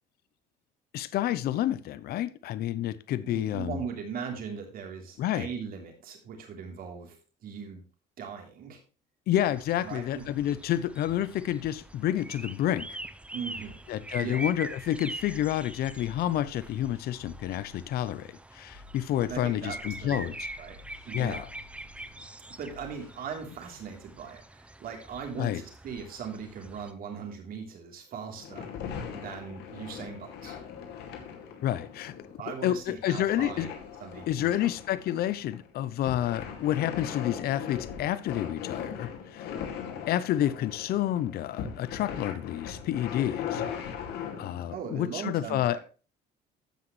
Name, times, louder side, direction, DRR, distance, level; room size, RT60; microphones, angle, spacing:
voice 1, 0.9-3.8 5.2-5.5 9.3-13.0 13.9-20.5 21.1-21.5 25.4-25.6 31.6-32.2 32.6-33.7 34.3-39.5 40.1-43.6 44.4-45.8, left 12 dB, 65° left, 0.7 m, -29 dB
voice 2, 3.2-7.8 8.2-8.8 9.8-10.3 13.3-13.8 14.2-14.4 19.2-20.8 21.0-21.4 22.6-28.7 29.1-30.5 32.4-33.7 34.0-34.7 44.7-45.8, right 6 dB, 60° right, 3.4 m, -39 dB
sound 1, 9.4-26.9, right 1 dB, 5° right, 0.7 m, -44 dB
sound 2, 15.2-18.2 18.6-22.2 22.6-23.2, left 4 dB, 20° left, 4.2 m, -52 dB
sound 3, 28.4-44.7, left 8 dB, 80° left, 2.3 m, -39 dB
15.0 x 6.0 x 3.2 m
cardioid pair, 110°, 17 cm